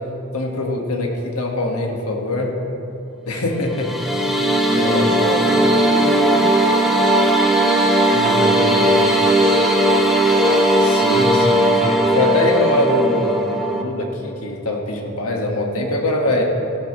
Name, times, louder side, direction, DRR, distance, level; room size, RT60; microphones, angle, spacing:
voice 1, 0.3-2.5 3.2-3.9 4.3-4.4 4.7-5.2 8.0-9.0 10.8-16.4, left 1 dB, 70° left, 1 dB, 1.6 m, -23 dB
sound 1, 3.6-13.8, right 1 dB, ahead, 0.8 m, -17 dB
voice 2, 4.7-10.7, right 1 dB, 30° right, 0 dB, 1.4 m, -30 dB
15.5 x 12.0 x 3.1 m, 2.8 s
head